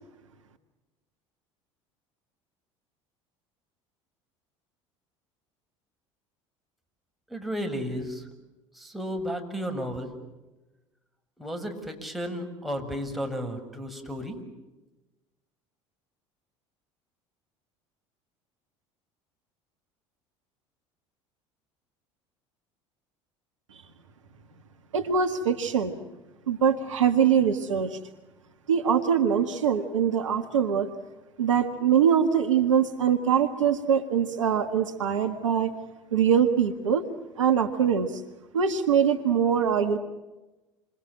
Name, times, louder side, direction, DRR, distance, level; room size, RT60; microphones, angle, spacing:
voice 1, 7.3-8.3 8.7-10.1 11.4-14.4, equal, ahead, 3 dB, 6.6 m, -33 dB
voice 2, 24.9-26.0 26.5-28.0 28.7-30.9 31.4-35.7 36.1-37.0 37.4-38.2 38.5-40.0, right 7 dB, 80° right, 8 dB, 1.8 m, -23 dB
28.5 x 26.5 x 7.6 m, 1.1 s
figure-of-eight pair, 70°, 16 cm